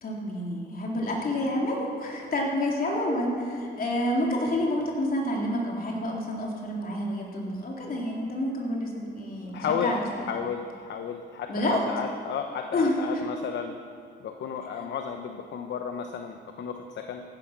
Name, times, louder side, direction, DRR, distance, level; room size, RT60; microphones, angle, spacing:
voice 1, 0.0-10.0 11.5-11.9 12.7-12.9, left 1 dB, 45° left, -2 dB, 3.6 m, -28 dB
voice 2, 9.5-13.8 14.2-17.2, left 6 dB, 65° left, 5 dB, 1.0 m, -33 dB
15.0 x 11.5 x 6.1 m, 2.3 s
cardioid pair, 90°, 20 cm